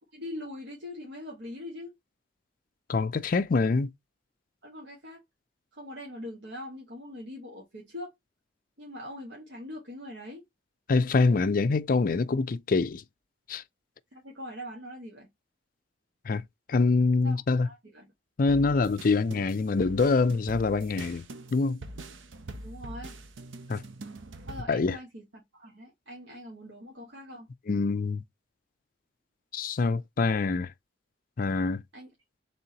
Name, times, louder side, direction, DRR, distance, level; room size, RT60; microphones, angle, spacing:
voice 1, 0.1-1.9 4.6-5.2 5.7-8.1 8.8-10.4 14.1-15.3 17.2-18.1 22.6-23.1 23.7-23.8 24.5-27.5 31.9-32.1, left 1 dB, 65° right, 1.4 m, -42 dB
voice 2, 2.9-3.9 10.9-13.0 13.5-13.6 16.3-16.4 16.7-17.7 18.4-21.2 21.5-21.8 23.7-23.8 24.7-25.0 27.7-28.2 29.5-30.7 31.4-31.8, left 4 dB, 45° left, 0.4 m, -25 dB
sound 1, 18.5-24.6, right 2 dB, 85° right, 0.7 m, -44 dB
4.1 x 3.7 x 2.8 m
head